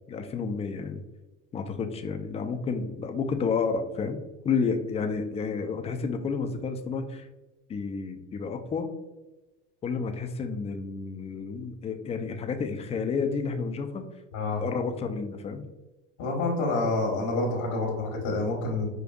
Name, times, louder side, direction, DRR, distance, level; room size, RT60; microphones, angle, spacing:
voice 1, 0.1-1.0 1.5-4.2 4.4-7.3 7.7-8.9 9.8-14.1 14.6-15.6, left 5 dB, 15° left, 6 dB, 0.3 m, -30 dB
voice 2, 14.3-14.6 16.2-18.9, left 2 dB, 65° left, 0 dB, 1.2 m, -28 dB
5.2 x 2.5 x 2.3 m, 1.1 s
hypercardioid pair, 90°, 39 cm